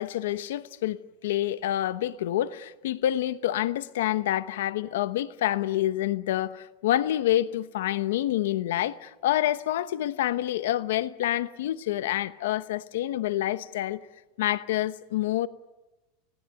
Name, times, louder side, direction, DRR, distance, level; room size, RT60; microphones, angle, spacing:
voice 1, 0.0-14.0 14.4-15.5, left 13 dB, 75° left, 0.9 m, -27 dB
29.0 x 19.0 x 9.1 m
supercardioid pair, 170°, 0 cm